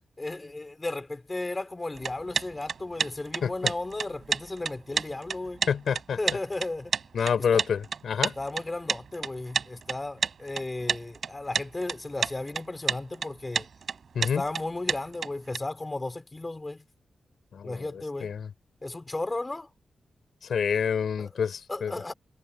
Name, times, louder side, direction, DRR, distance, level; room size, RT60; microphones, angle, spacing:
voice 1, 0.2-5.7 6.1-6.9 7.5-7.6 8.4-13.7 14.2-16.8 17.6-18.3 18.8-19.7 21.2-21.3 21.7-22.1, left 2 dB, 20° left, 3.6 m, -34 dB
sound 1, 1.9-15.6, right 6 dB, 60° right, 4.0 m, -30 dB
voice 2, 3.4-3.7 5.7-6.2 7.1-8.3 14.1-14.4 17.5-18.5 20.5-21.9, left 7 dB, 70° left, 4.4 m, -28 dB
wide cardioid pair, 125°, 0 cm